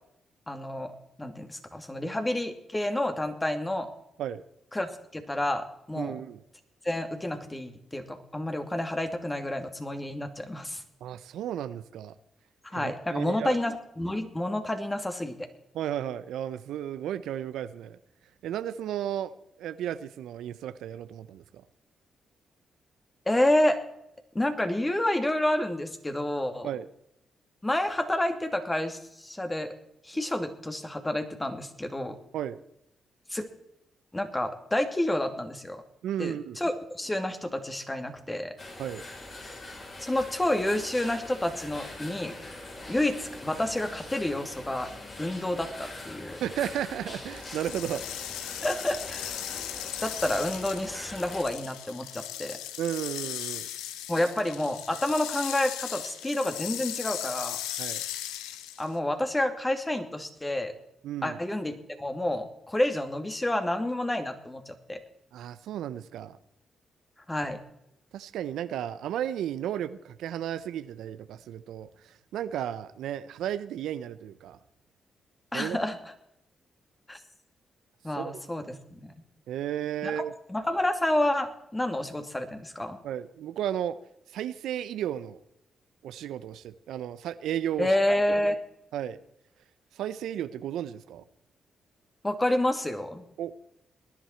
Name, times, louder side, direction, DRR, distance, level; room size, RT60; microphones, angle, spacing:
voice 1, 0.5-0.9 1.2-3.9 4.7-6.1 6.8-10.8 12.6-15.4 23.3-23.8 24.3-26.7 27.6-29.7 30.0-32.2 33.3-33.5 34.1-35.8 36.2-38.5 40.0-42.3 42.9-44.9 45.2-46.4 48.6-49.3 50.0-52.6 54.1-57.6 58.8-60.7 61.2-65.0 67.3-67.6 75.5-76.0 77.1-77.2 78.0-79.1 80.0-80.1 80.5-83.0 87.8-88.6 92.2-93.2, left 1 dB, 20° left, 6 dB, 2.6 m, -29 dB
voice 2, 6.0-6.4 11.0-12.1 12.7-13.6 15.7-18.0 18.4-19.3 19.6-21.6 26.6-26.9 32.3-32.6 36.0-36.6 38.8-39.0 46.4-48.0 52.8-53.7 57.8-58.0 61.0-61.4 65.3-66.4 68.1-74.6 75.5-75.8 78.2-78.4 79.5-80.3 83.0-84.0 84.3-85.4 86.0-88.0 88.9-89.2 89.9-91.2 93.4-93.5, right 10 dB, 75° right, 14 dB, 0.6 m, -34 dB
sound 1, 38.6-51.4, left 2 dB, 50° left, 7.7 m, -43 dB
sound 2, 47.3-59.0, left 12 dB, 85° left, 0.8 m, -37 dB
19.5 x 11.5 x 4.5 m, 0.79 s
hypercardioid pair, 45°, 0 cm